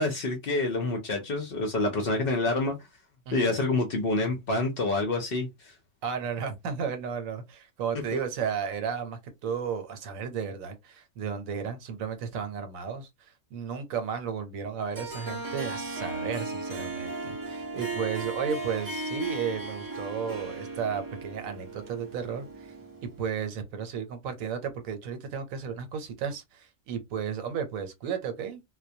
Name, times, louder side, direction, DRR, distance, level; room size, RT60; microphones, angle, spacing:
voice 1, 0.0-2.8 3.3-5.7, left 2 dB, 55° left, 0.7 m, -27 dB
voice 2, 6.0-22.7 23.0-28.6, right 7 dB, 80° right, 1.0 m, -34 dB
Harp, 14.9-23.4, right 3 dB, 30° right, 0.3 m, -36 dB
2.2 x 2.2 x 2.6 m
omnidirectional pair, 1.4 m